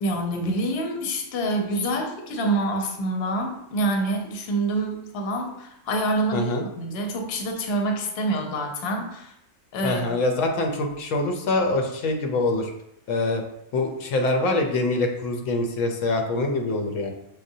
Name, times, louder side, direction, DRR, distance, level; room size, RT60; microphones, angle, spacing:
voice 1, 0.0-9.3 9.7-10.1, right 1 dB, 60° left, 2 dB, 0.9 m, -26 dB
voice 2, 6.3-6.6 9.8-12.7 13.1-13.4 13.7-17.1, left 2 dB, 90° left, 3 dB, 1.0 m, -24 dB
6.2 x 2.1 x 2.7 m, 0.78 s
omnidirectional pair, 1.3 m